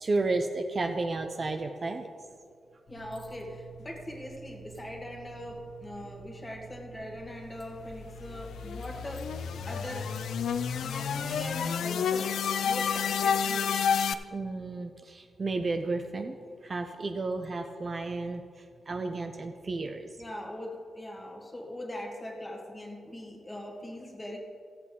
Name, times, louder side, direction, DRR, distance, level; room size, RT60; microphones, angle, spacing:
voice 1, 0.0-2.1 14.3-16.3 16.6-20.2, right 3 dB, 35° right, 5 dB, 0.5 m, -32 dB
sound 1, 2.9-11.4, right 6 dB, 65° left, 2.0 m, -49 dB
voice 2, 2.9-9.3 9.7-10.3 10.8-12.3 12.6-13.7 18.9-19.0 20.2-24.4, left 1 dB, 15° left, 1 dB, 1.4 m, -41 dB
sound 2, 7.7-14.1, left 7 dB, 85° left, 0.4 m, -30 dB
14.5 x 8.3 x 3.7 m, 2.3 s
wide cardioid pair, 150°, 0 cm